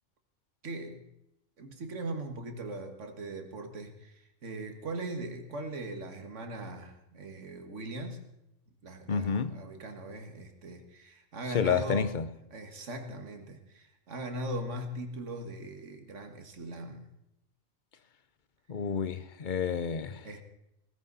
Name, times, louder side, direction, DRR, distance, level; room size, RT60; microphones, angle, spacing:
voice 1, 0.6-1.1 1.6-8.3 8.8-12.1 12.5-17.1 20.2-20.4, right 1 dB, 65° right, 2.1 m, -40 dB
voice 2, 9.1-9.6 11.5-12.3 18.7-20.3, left 6 dB, 45° left, 0.8 m, -30 dB
19.0 x 14.5 x 4.1 m
omnidirectional pair, 1.3 m